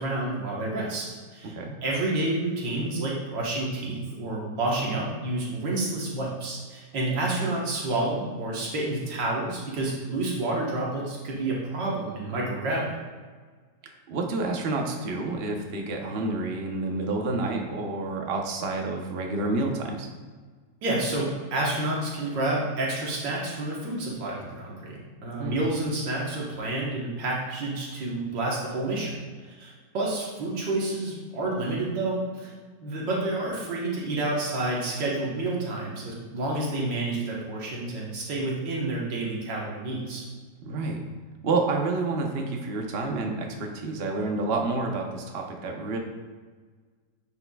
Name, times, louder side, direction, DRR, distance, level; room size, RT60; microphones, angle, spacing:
voice 1, 0.0-1.5 1.8-13.0 20.8-32.5 32.8-40.2, right 2 dB, 90° right, -4 dB, 2.0 m, -29 dB
voice 2, 14.1-20.1 25.4-25.6 40.6-41.0 41.4-46.0, right 3 dB, 45° right, 1 dB, 0.9 m, -29 dB
10.0 x 5.8 x 2.3 m, 1.5 s
omnidirectional pair, 1.9 m